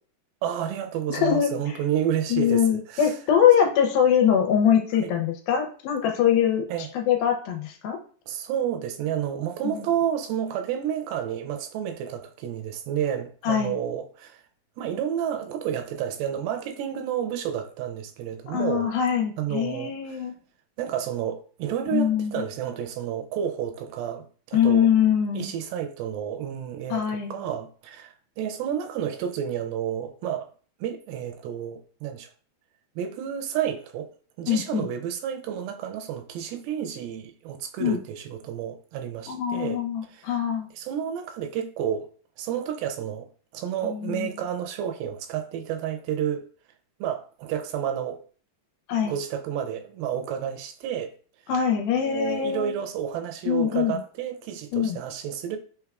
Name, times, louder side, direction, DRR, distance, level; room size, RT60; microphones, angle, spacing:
voice 1, 0.4-3.2 5.0-5.1 6.7-6.9 8.3-14.4 14.8-18.9 19.4-20.2 20.8-24.9 25.3-30.5 30.8-32.3 33.0-34.1 34.4-39.8 40.1-40.3 40.7-42.1 42.4-43.3 43.5-46.5 47.0-48.2 49.0-51.1 52.0-55.6, right 9 dB, 85° right, 2.3 m, -30 dB
voice 2, 1.1-1.5 2.3-6.6 6.9-8.0 9.6-9.9 13.4-13.8 18.5-20.3 21.9-22.4 24.5-25.5 26.9-27.4 34.5-34.9 37.8-38.0 39.3-40.7 43.8-44.3 48.9-49.2 51.5-52.7 53.5-54.0 54.7-55.0, left 9 dB, 80° left, 2.4 m, -23 dB
5.8 x 3.5 x 2.3 m
omnidirectional pair, 4.4 m